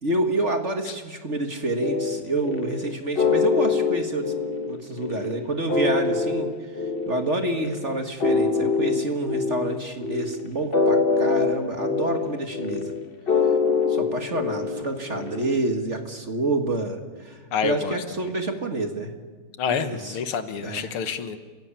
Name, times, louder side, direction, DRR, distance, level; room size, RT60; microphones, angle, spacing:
voice 1, 0.0-4.3 4.7-6.5 7.1-12.9 13.9-19.1 19.7-20.2 20.6-20.9, right 2 dB, 35° right, 5 dB, 1.8 m, -28 dB
sound 1, 1.8-15.6, left 4 dB, 30° left, 1.3 m, -25 dB
voice 2, 17.5-18.0 19.6-21.4, left 7 dB, 75° left, 10 dB, 2.1 m, -28 dB
30.0 x 17.0 x 8.9 m, 1.5 s
omnidirectional pair, 2.4 m